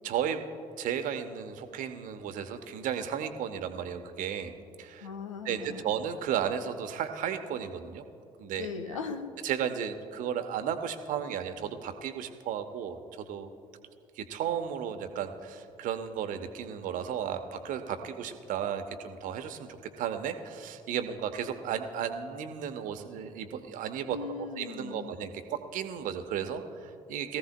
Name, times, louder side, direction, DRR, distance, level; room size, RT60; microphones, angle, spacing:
voice 1, 0.0-0.4 0.8-4.5 4.8-5.1 5.4-8.0 8.4-8.7 9.4-13.0 13.3-13.5 14.2-19.7 20.0-27.4, right 8 dB, 55° right, 8 dB, 1.0 m, -34 dB
voice 2, 5.0-5.8 8.6-9.3 24.1-25.1, left 5 dB, 80° left, 7 dB, 0.7 m, -38 dB
22.0 x 15.0 x 2.2 m, 2.7 s
figure-of-eight pair, 45°, 16 cm